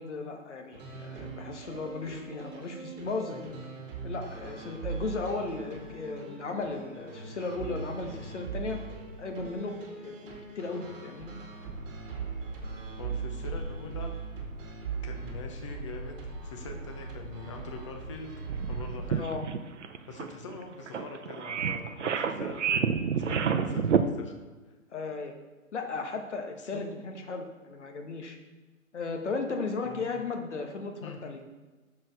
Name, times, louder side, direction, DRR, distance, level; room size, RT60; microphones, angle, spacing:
voice 1, 0.0-3.6 4.0-8.8 9.2-11.4 19.1-19.4 24.9-25.3 25.7-28.4 28.9-31.4, left 3 dB, 55° left, 4 dB, 1.3 m, -36 dB
sound 1, 0.7-19.2, right 4 dB, 40° right, 2.0 m, -39 dB
voice 2, 13.0-14.1 15.0-18.3 18.7-19.3 20.1-24.3 26.6-26.9 29.8-30.1 31.0-31.2, left 4 dB, 20° left, 4 dB, 0.7 m, -43 dB
sound 2, 18.5-24.0, right 7 dB, 60° right, 0.7 m, -29 dB
6.4 x 6.2 x 4.7 m, 1.3 s
figure-of-eight pair, 135°, 41 cm